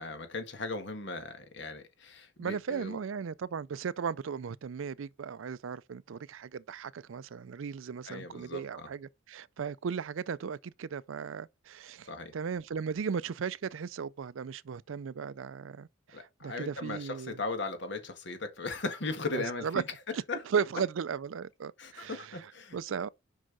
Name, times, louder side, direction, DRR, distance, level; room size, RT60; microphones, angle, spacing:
voice 1, 0.0-3.0 8.0-8.9 12.1-12.3 16.1-19.8 20.3-20.4 21.8-22.8, left 3 dB, 60° left, 1.6 m, -38 dB
voice 2, 2.4-17.4 19.3-19.8 20.1-20.2 20.5-23.1, right 6 dB, 85° right, 0.4 m, -36 dB
6.2 x 5.6 x 3.9 m
head